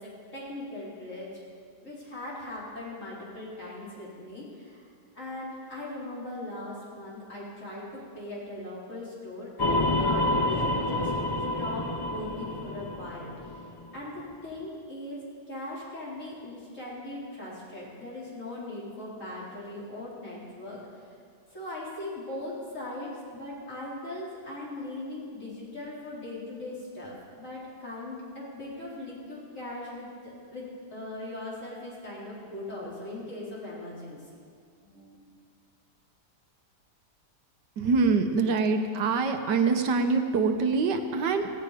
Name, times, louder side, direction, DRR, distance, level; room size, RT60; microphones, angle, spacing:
voice 1, 0.0-1.4 1.8-4.8 5.1-11.1 11.6-13.6 13.9-20.8 21.5-34.2 34.8-35.1, left 1 dB, 45° left, -7 dB, 4.7 m, -39 dB
sound 1, 9.6-14.0, left 1 dB, 25° left, 0.5 m, -28 dB
voice 2, 37.8-41.5, right 4 dB, 80° right, 6 dB, 1.7 m, -25 dB
17.0 x 16.0 x 5.1 m, 2.2 s
omnidirectional pair, 1.8 m